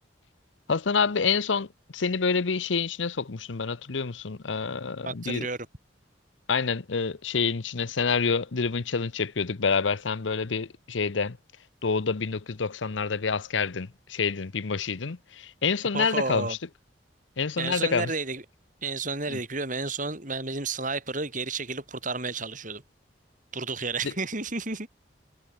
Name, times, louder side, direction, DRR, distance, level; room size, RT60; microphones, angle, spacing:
voice 1, 0.7-5.5 6.5-11.4 11.8-16.6 17.4-18.1 19.3-19.4 24.0-24.1, left 5 dB, 85° left, 0.8 m, -27 dB
voice 2, 5.0-5.6 15.9-16.6 17.6-18.4 18.8-22.8 23.5-24.9, right 3 dB, 45° right, 6.8 m, -31 dB
head